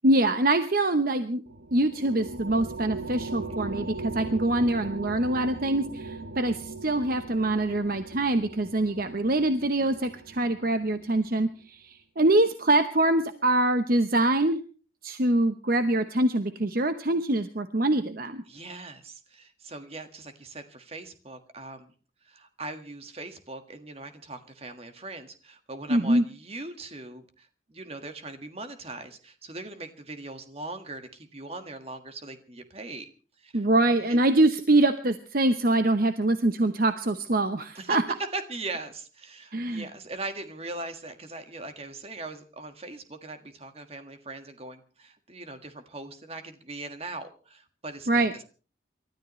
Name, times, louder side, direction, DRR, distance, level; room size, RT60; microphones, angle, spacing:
voice 1, 0.0-1.4 1.7-14.6 15.0-18.4 25.9-26.2 33.5-38.0 39.5-39.9 48.1-48.3, right 2 dB, 50° right, 9 dB, 0.9 m, -24 dB
sound 1, 1.5-11.2, right 3 dB, 70° right, 1.1 m, -39 dB
voice 2, 18.5-21.9 22.2-33.1 33.4-33.7 34.1-34.2 37.7-38.0 38.3-48.4, right 2 dB, 30° right, 8 dB, 1.7 m, -40 dB
29.0 x 13.0 x 3.1 m, 0.37 s
head